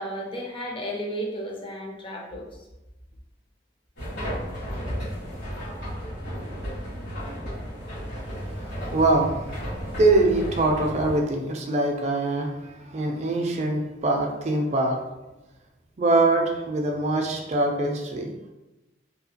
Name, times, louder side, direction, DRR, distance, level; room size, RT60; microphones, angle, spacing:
voice 1, 0.0-2.5 4.9-5.0, equal, 30° left, 0 dB, 0.5 m, -33 dB
sound 1, 4.0-11.2, equal, 70° left, 1.5 m, -34 dB
voice 2, 8.4-9.7 9.9-15.0 16.0-18.3, right 2 dB, 40° right, 2 dB, 0.4 m, -23 dB
2.8 x 2.4 x 2.8 m, 1.0 s
head